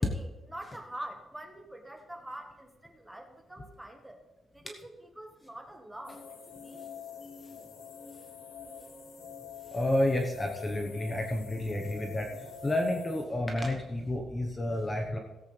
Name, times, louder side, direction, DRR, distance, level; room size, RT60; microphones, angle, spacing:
voice 1, 0.0-4.2 4.5-6.9, right 1 dB, 5° right, 3 dB, 1.5 m, -45 dB
sound 1, 6.0-13.2, left 7 dB, 90° left, 2.3 m, -45 dB
voice 2, 9.7-15.2, left 1 dB, 15° left, 2 dB, 1.1 m, -30 dB
17.0 x 8.3 x 3.4 m, 1.1 s
cardioid pair, 145°, 0 cm